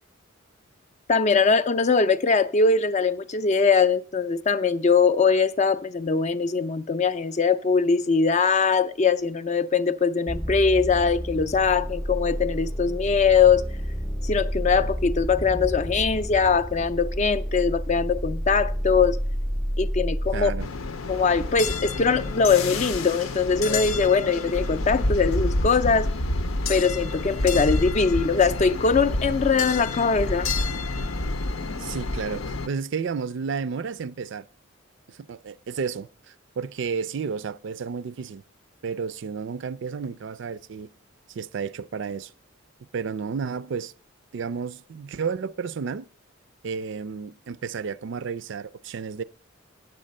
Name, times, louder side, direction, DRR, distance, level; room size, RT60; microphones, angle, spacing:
voice 1, 1.1-13.6 14.2-19.2 19.8-20.5 21.1-26.1 26.7-30.5, left 5 dB, 35° left, 0.4 m, -21 dB
sound 1, 10.3-20.6, equal, ahead, 0.7 m, -30 dB
voice 2, 20.3-20.7 31.7-34.5 35.1-38.4 38.8-40.9 41.3-42.3 42.9-43.9 44.3-46.1 46.6-49.2, right 5 dB, 60° right, 0.4 m, -32 dB
sound 2, 20.6-32.7, left 2 dB, 85° left, 0.7 m, -28 dB
9.4 x 7.5 x 5.3 m
head